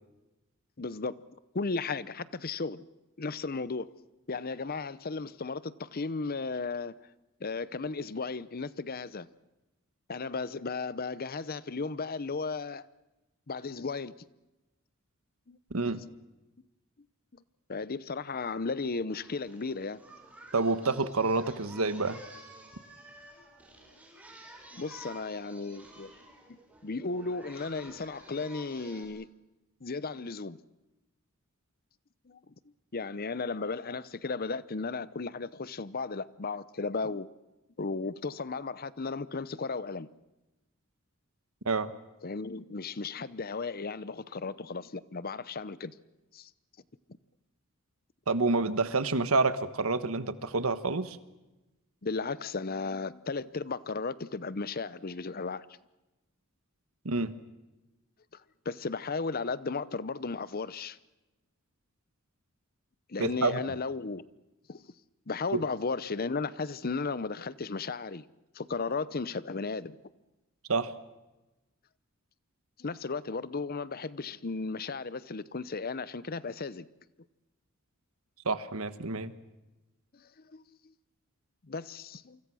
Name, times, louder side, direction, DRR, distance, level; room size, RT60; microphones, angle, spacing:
voice 1, 0.8-1.2 1.5-2.8 3.2-3.9 4.3-6.9 7.4-9.3 10.1-12.8 13.5-14.1 15.5-15.6 17.3-17.4 17.7-20.0 24.7-26.1 26.5-29.3 29.8-30.6 32.3-32.4 32.9-37.3 37.8-40.1 42.2-45.9 46.3-46.5 52.0-55.7 58.6-61.0 63.1-64.2 64.7-64.8 65.3-68.2 68.5-70.0 72.8-76.9 80.1-80.2 80.5-80.8 81.6-82.4, left 4 dB, 45° left, 0.8 m, -35 dB
voice 2, 15.7-16.0 20.5-22.2 41.6-41.9 48.3-51.2 57.0-57.3 63.2-63.6 70.7-70.9 78.4-79.3, right 3 dB, 80° right, 1.4 m, -28 dB
Singing, 19.1-29.0, right 1 dB, 5° right, 5.9 m, -52 dB
28.5 x 25.0 x 6.3 m
head